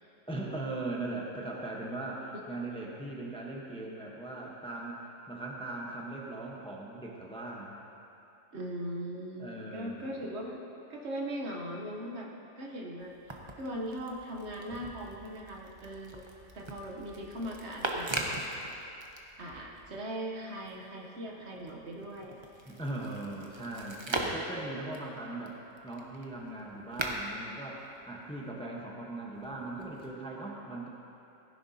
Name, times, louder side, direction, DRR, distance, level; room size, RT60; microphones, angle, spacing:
voice 1, 0.3-5.0 5.3-7.8 9.4-10.2 22.6-25.6 25.8-30.9, right 2 dB, 5° left, -3 dB, 0.9 m, -39 dB
voice 2, 8.5-10.6 10.9-16.2 16.5-18.1 19.4-22.3, right 1 dB, 60° right, -1 dB, 1.3 m, -39 dB
sound 1, 13.0-20.0 20.4-28.5 29.3-30.1, right 2 dB, 25° right, 0.7 m, -41 dB
15.5 x 10.0 x 2.8 m, 2.8 s
omnidirectional pair, 1.3 m